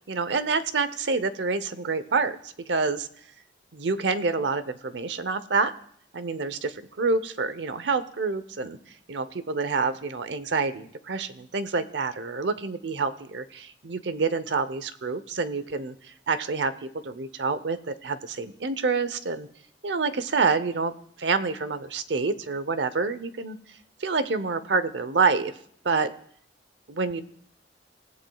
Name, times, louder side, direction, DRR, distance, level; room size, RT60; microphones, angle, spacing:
voice 1, 0.1-3.1 3.7-5.7 6.1-8.8 9.1-19.5 19.8-23.6 24.0-25.5 25.8-26.1 26.9-27.2, right 4 dB, 75° right, 13 dB, 0.8 m, -27 dB
27.5 x 15.0 x 2.3 m, 0.64 s
head